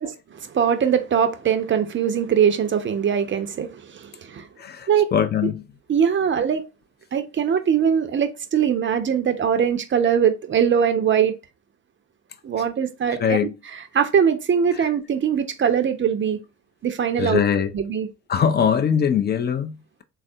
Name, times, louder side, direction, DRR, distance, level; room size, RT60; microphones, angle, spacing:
voice 1, 0.0-4.5 4.9-5.1 5.4-5.5 5.9-6.6 7.1-11.3 12.4-16.4 16.8-17.4 17.7-18.1, right 8 dB, 25° right, 0.5 m, -21 dB
voice 2, 4.6-5.6 13.2-13.5 17.2-17.7 18.3-20.0, left 8 dB, 25° left, 0.4 m, -22 dB
3.4 x 2.3 x 2.6 m
hypercardioid pair, 55°, 45 cm